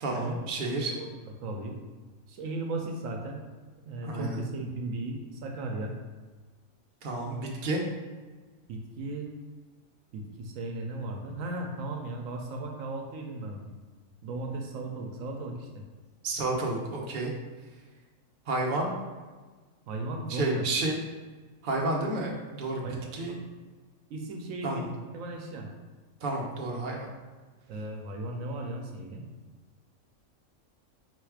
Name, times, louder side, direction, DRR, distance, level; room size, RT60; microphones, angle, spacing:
voice 1, 0.0-0.9 4.0-4.4 7.0-7.8 16.2-17.3 18.5-18.9 20.3-21.0 21.6-22.8 23.1-23.3 24.6-24.8 26.2-27.1, right 2 dB, 45° right, -1 dB, 0.8 m, -30 dB
voice 2, 1.0-1.8 2.3-3.4 3.9-6.0 8.7-9.3 10.1-13.7 14.2-15.8 19.9-20.7 22.8-23.4 24.1-25.7 27.7-29.3, right 2 dB, 80° right, 2 dB, 1.0 m, -36 dB
4.2 x 2.4 x 4.6 m, 1.4 s
omnidirectional pair, 1.4 m